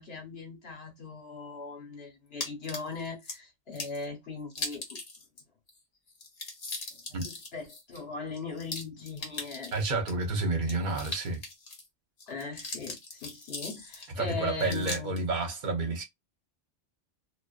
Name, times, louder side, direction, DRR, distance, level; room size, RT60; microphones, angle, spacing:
voice 1, 0.0-5.0 7.1-9.8 12.3-15.2, left 4 dB, 60° left, 1.2 m, -39 dB
sound 1, 2.4-3.4 3.8-4.0 4.5-5.4 5.7-5.8 6.1-10.1 10.6-11.9 12.2-14.1 14.6-15.2, left 2 dB, 40° left, 0.7 m, -39 dB
voice 2, 9.7-11.4 14.2-16.0, right 3 dB, 45° right, 0.8 m, -30 dB
2.5 x 2.2 x 2.4 m
omnidirectional pair, 1.2 m